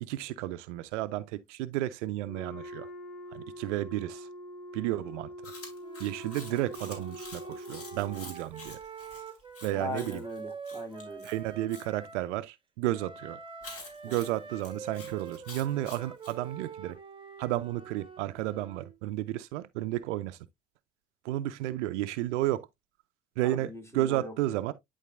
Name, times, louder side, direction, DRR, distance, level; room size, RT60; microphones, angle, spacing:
voice 1, 0.0-2.9 3.3-4.3 4.7-5.3 6.0-8.8 9.6-10.2 11.2-13.4 14.0-17.0 17.4-20.4 21.2-22.7 23.4-24.7, right 15 dB, 75° right, 0.5 m, -32 dB
Wind instrument woodwind instrument, 2.2-8.3, equal, 60° left, 1.9 m, -44 dB
Chewing mastication, 5.4-11.9 13.6-16.4, left 3 dB, 40° left, 3.2 m, -48 dB
Wind instrument woodwind instrument 2, 5.8-12.2 12.9-19.0, right 5 dB, 15° right, 1.3 m, -45 dB
voice 2, 9.7-11.3 14.1-14.2 23.4-24.3, left 1 dB, 10° left, 2.1 m, -40 dB
11.0 x 3.9 x 2.4 m
figure-of-eight pair, 55°, 36 cm